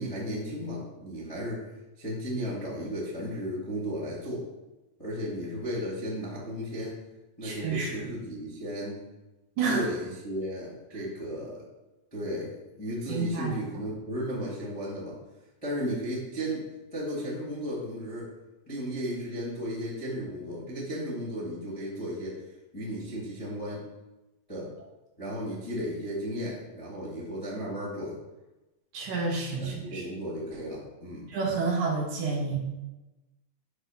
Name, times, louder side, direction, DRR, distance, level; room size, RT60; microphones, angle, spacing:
voice 1, 0.0-1.7 2.0-4.4 5.0-7.0 7.4-9.0 9.7-11.6 12.1-12.5 12.8-15.2 15.6-18.3 18.7-22.4 22.7-23.8 24.5-24.7 25.2-28.1 29.6-31.3, equal, 30° left, -8 dB, 0.6 m, -34 dB
voice 2, 7.4-7.9 9.6-9.9 13.1-13.6 28.9-30.0 31.3-32.6, right 4 dB, 70° right, -1 dB, 2.3 m, -29 dB
7.9 x 2.9 x 5.6 m, 1.0 s
omnidirectional pair, 4.1 m